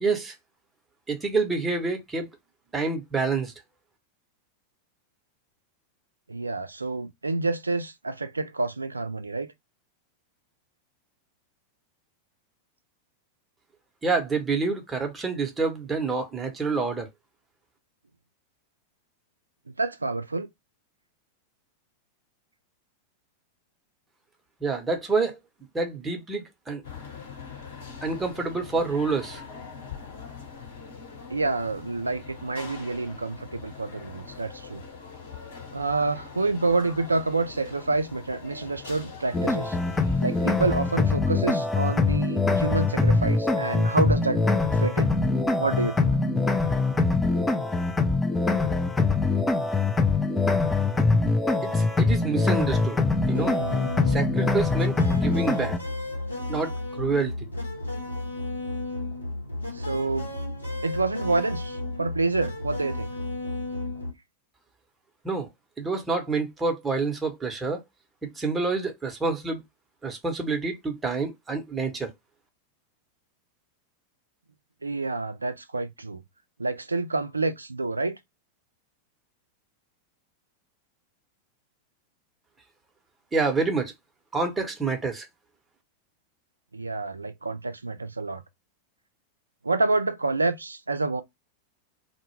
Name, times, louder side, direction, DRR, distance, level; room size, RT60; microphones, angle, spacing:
voice 1, 0.0-0.3 1.1-2.3 2.7-3.5 14.0-17.1 24.6-25.4 25.7-26.8 28.0-29.4 51.6-53.0 53.3-53.5 54.1-55.8 56.5-57.3 65.2-65.5 65.8-67.8 68.2-69.6 70.0-72.1 83.3-83.9 84.3-85.2, right 4 dB, 15° right, 0.8 m, -27 dB
voice 2, 6.3-9.5 19.8-20.5 31.3-34.8 35.7-39.8 40.2-44.4 44.8-45.1 45.6-46.2 55.0-55.1 59.7-60.3 60.8-63.1 74.8-76.2 76.6-78.2 86.7-88.4 89.6-91.2, right 3 dB, 80° right, 0.3 m, -28 dB
sound 1, 26.8-40.8, left 5 dB, 60° left, 1.0 m, -43 dB
sound 2, 39.3-55.8, left 3 dB, 10° left, 0.4 m, -23 dB
sound 3, 53.3-64.1, left 2 dB, 85° left, 0.8 m, -33 dB
2.1 x 2.1 x 3.0 m
figure-of-eight pair, 90°, 0 cm